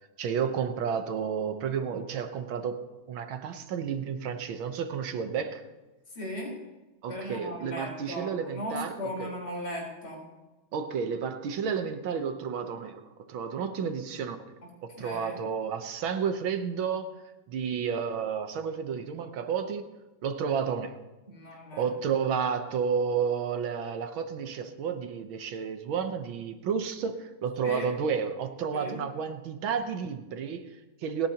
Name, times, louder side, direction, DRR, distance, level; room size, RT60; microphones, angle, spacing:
voice 1, 0.2-2.8 3.1-5.6 7.0-9.3 10.7-14.4 14.8-17.1 17.5-19.8 20.2-21.0 21.8-31.3, right 6 dB, 75° right, 8 dB, 1.7 m, -31 dB
voice 2, 6.1-6.6 7.1-10.2 15.0-15.4 21.3-21.9 27.6-27.9 28.7-29.0, left 1 dB, 55° left, -2 dB, 4.8 m, -37 dB
30.0 x 10.0 x 2.9 m, 1.1 s
omnidirectional pair, 2.2 m